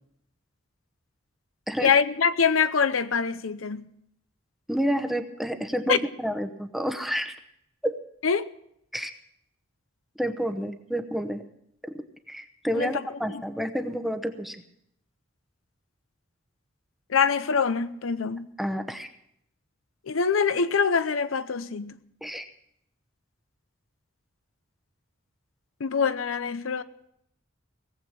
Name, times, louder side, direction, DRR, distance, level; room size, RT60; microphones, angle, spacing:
voice 1, 1.8-3.9 5.9-6.0 8.2-8.5 12.7-12.9 13.3-13.4 17.1-18.5 20.1-22.0 25.8-26.8, left 6 dB, 85° left, 0.7 m, -24 dB
voice 2, 4.7-7.4 7.8-7.9 8.9-9.1 10.2-11.4 11.8-14.6 18.6-19.1 22.2-22.4, equal, ahead, 0.9 m, -29 dB
18.5 x 8.0 x 7.4 m
head